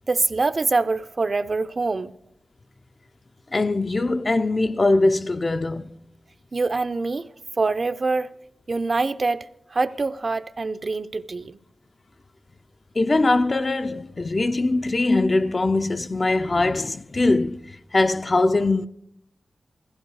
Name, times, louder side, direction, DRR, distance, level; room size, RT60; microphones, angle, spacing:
voice 1, 0.1-2.1 6.5-7.3 7.6-8.3 8.7-11.6, right 3 dB, 45° right, 0.5 m, -24 dB
voice 2, 3.5-5.9 13.0-18.9, left 2 dB, 35° left, 0.5 m, -22 dB
15.5 x 15.0 x 4.7 m
wide cardioid pair, 95°, 0 cm